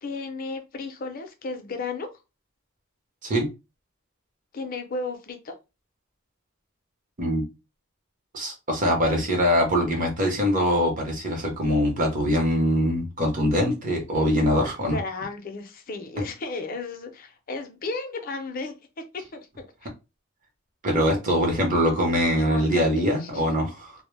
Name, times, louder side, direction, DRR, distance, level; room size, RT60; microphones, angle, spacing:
voice 1, 0.0-2.1 4.5-5.5 9.1-9.2 14.8-19.6 21.5-21.7 22.4-23.4, left 3 dB, 40° left, 0.5 m, -34 dB
voice 2, 8.3-15.0 20.8-23.9, equal, 40° right, 0.8 m, -23 dB
2.1 x 2.0 x 3.1 m
head